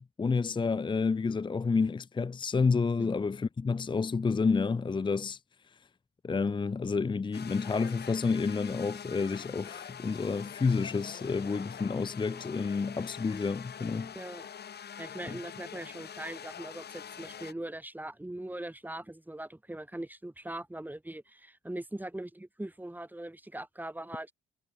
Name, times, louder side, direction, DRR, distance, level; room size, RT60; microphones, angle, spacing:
voice 1, 0.0-5.4 6.2-14.1 15.3-15.4, left 4 dB, 25° left, 0.8 m, -29 dB
sound 1, 7.3-17.5, left 8 dB, 55° left, 5.6 m, -45 dB
voice 2, 14.1-14.5 15.0-24.3, right 1 dB, 10° right, 4.7 m, -41 dB
cardioid pair, 90°, 20 cm